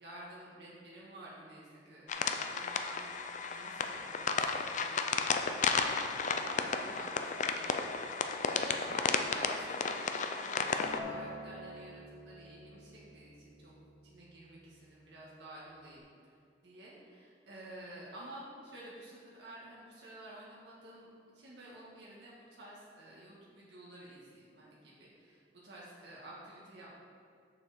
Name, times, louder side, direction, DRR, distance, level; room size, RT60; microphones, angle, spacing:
voice 1, 0.0-5.2 5.6-13.7 14.0-16.1 16.6-26.9, right 1 dB, 70° right, -6 dB, 1.6 m, -51 dB
sound 1, 2.1-11.0, left 5 dB, 45° left, 0.5 m, -33 dB
Acoustic guitar, 10.8-16.0, left 1 dB, 70° left, 1.6 m, -49 dB
7.0 x 6.3 x 5.0 m, 2.3 s
head